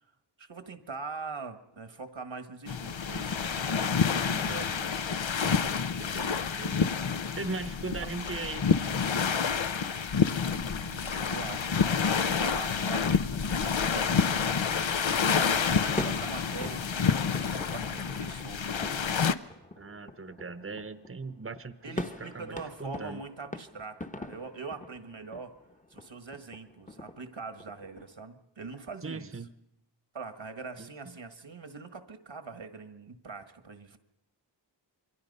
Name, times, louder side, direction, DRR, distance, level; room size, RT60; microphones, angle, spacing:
voice 1, 0.4-5.0 8.0-8.3 10.5-11.6 12.2-14.8 15.2-16.9 17.2-18.7 21.8-25.6 25.9-29.4 30.1-34.0, right 4 dB, 80° right, 9 dB, 1.6 m, -43 dB
sound 1, 2.7-19.3, left 6 dB, 80° left, 0.8 m, -28 dB
voice 2, 6.0-7.0 7.3-8.7 15.9-16.0 19.8-23.2 29.0-29.5 30.8-31.2, right 4 dB, 30° right, 12 dB, 0.9 m, -39 dB
sound 2, 16.0-28.1, left 2 dB, 15° left, 1.0 m, -43 dB
28.0 x 22.5 x 5.5 m, 0.80 s
wide cardioid pair, 55°, 45 cm